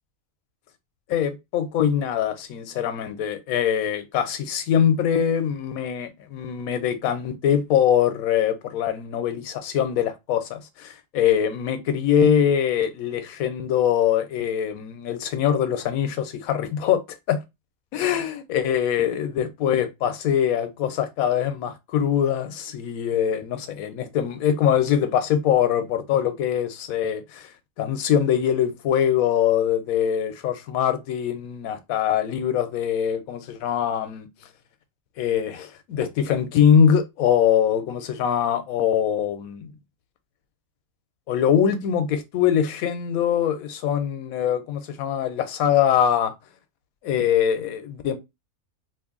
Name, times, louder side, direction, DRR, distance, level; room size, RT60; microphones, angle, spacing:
voice 1, 1.1-17.0 17.3-17.4 17.9-27.5 27.8-34.3 35.2-39.7 41.3-46.3 47.0-48.2, left 9 dB, 80° left, 1.1 m, -23 dB
2.8 x 2.5 x 3.7 m
omnidirectional pair, 1.5 m